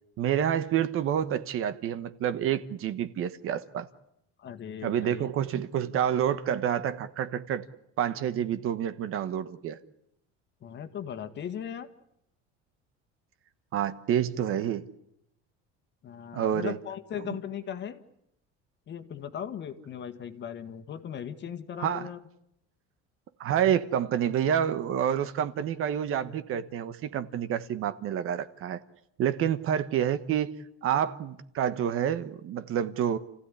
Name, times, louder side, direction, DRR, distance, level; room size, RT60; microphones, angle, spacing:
voice 1, 0.2-3.9 4.8-7.6 8.0-9.8 13.7-14.9 16.3-16.8 17.3-17.4 21.8-22.1 23.4-28.8 29.2-30.5 30.8-33.2, right 9 dB, 45° right, 1.2 m, -28 dB
voice 2, 4.4-5.2 10.6-11.9 16.0-18.0 18.9-22.2, left 8 dB, 35° left, 1.7 m, -38 dB
29.5 x 15.5 x 9.9 m
cardioid pair, 155°, 30 cm